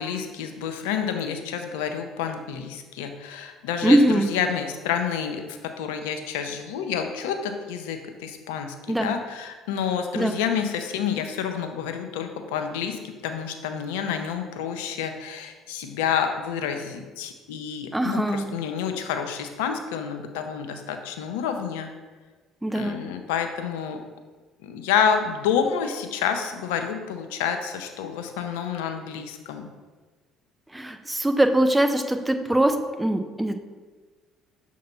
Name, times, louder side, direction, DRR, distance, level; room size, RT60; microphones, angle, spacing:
voice 1, 0.0-4.0 4.3-21.9 22.7-24.0 24.6-29.7, left 7 dB, 85° left, 6 dB, 0.5 m, -29 dB
voice 2, 3.8-4.3 8.9-9.1 10.1-10.4 17.9-18.5 22.6-23.0 30.7-33.6, right 1 dB, 10° right, 7 dB, 0.6 m, -22 dB
6.6 x 2.8 x 5.3 m, 1.4 s
supercardioid pair, 70°, 0 cm